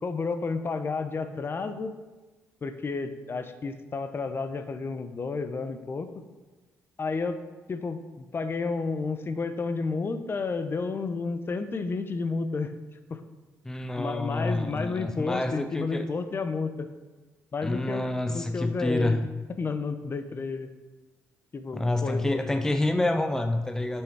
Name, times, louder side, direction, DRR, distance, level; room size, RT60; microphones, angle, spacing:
voice 1, 0.0-1.9 2.6-6.1 7.0-7.4 7.7-12.7 13.1-13.2 14.0-16.9 17.5-19.2 19.6-20.7 21.5-22.4, left 4 dB, 40° left, 9 dB, 0.8 m, -31 dB
voice 2, 13.6-16.1 17.6-19.3 21.7-24.0, left 1 dB, 10° left, 7 dB, 0.5 m, -28 dB
8.1 x 6.3 x 4.8 m, 1.2 s
supercardioid pair, 70°, 6 cm